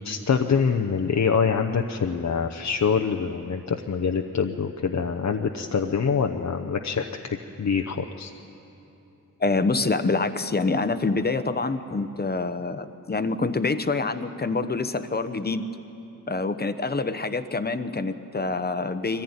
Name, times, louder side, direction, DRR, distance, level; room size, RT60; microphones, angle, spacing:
voice 1, 0.0-8.3, left 6 dB, 60° left, 4 dB, 0.8 m, -25 dB
voice 2, 9.4-15.7 16.3-19.2, left 3 dB, 30° left, 11 dB, 0.9 m, -26 dB
22.5 x 15.0 x 9.7 m, 2.9 s
wide cardioid pair, 80°, 32 cm